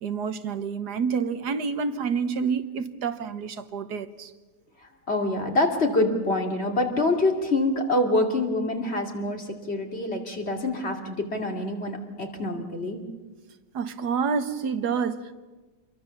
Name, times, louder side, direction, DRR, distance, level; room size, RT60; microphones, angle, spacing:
voice 1, 0.0-4.3 13.7-15.3, right 6 dB, 75° right, 1.6 m, -28 dB
voice 2, 5.1-13.0, left 2 dB, 40° left, 2.8 m, -26 dB
27.5 x 22.5 x 7.0 m
omnidirectional pair, 1.8 m